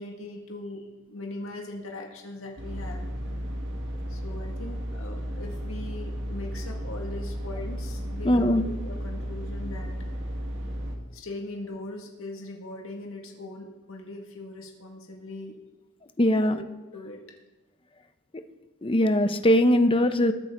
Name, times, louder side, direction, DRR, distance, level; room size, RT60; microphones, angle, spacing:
voice 1, 0.0-3.1 4.1-9.9 11.1-15.5 16.4-17.2, left 2 dB, 70° left, 1 dB, 2.0 m, -40 dB
sound 1, 2.6-11.0, equal, 60° right, 1.9 m, -34 dB
voice 2, 8.2-8.6 16.2-16.6 18.8-20.3, left 1 dB, 25° left, 9 dB, 0.7 m, -21 dB
21.0 x 8.9 x 3.9 m, 1.1 s
head